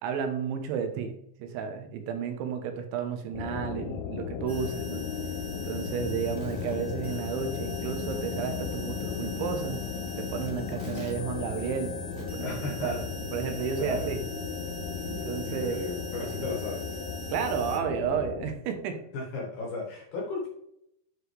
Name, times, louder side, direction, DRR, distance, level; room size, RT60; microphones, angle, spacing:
voice 1, 0.0-5.1 5.6-9.8 10.2-11.9 12.3-12.9 13.3-14.2 15.1-15.8 16.3-16.5 17.3-19.0, right 7 dB, 90° right, 6 dB, 3.4 m, -32 dB
sound 1, 3.3-18.5, left 8 dB, 85° left, 2.3 m, -36 dB
sound 2, 4.5-17.8, right 2 dB, 20° left, 1.2 m, -42 dB
voice 2, 12.4-13.0 13.8-14.2 15.4-17.0 19.1-20.5, left 3 dB, 60° left, -1 dB, 2.3 m, -35 dB
9.7 x 4.9 x 3.3 m, 0.74 s
omnidirectional pair, 5.2 m